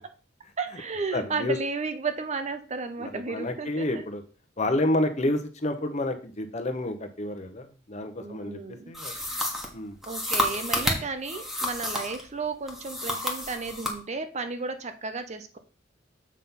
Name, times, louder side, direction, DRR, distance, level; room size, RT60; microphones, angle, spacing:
voice 1, 0.6-4.0 8.2-9.4 10.1-15.6, right 4 dB, 35° right, 9 dB, 0.7 m, -33 dB
voice 2, 1.1-1.6 3.0-4.2 4.6-9.1 9.7-10.0, left 1 dB, 40° left, 6 dB, 0.9 m, -29 dB
sound 1, 8.9-12.2 12.7-14.0, left 1 dB, ahead, 1.3 m, -30 dB
7.4 x 3.8 x 5.5 m, 0.37 s
head